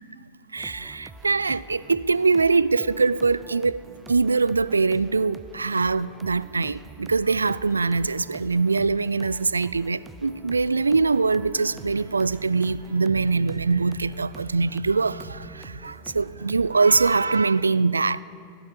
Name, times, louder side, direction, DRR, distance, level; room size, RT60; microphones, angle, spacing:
voice 1, 0.5-3.8 4.1-18.2, right 4 dB, 75° right, 0.3 m, -23 dB
sound 1, 0.6-17.4, right 3 dB, 15° right, 0.8 m, -46 dB
15.5 x 12.5 x 7.3 m
figure-of-eight pair, 90°, 0 cm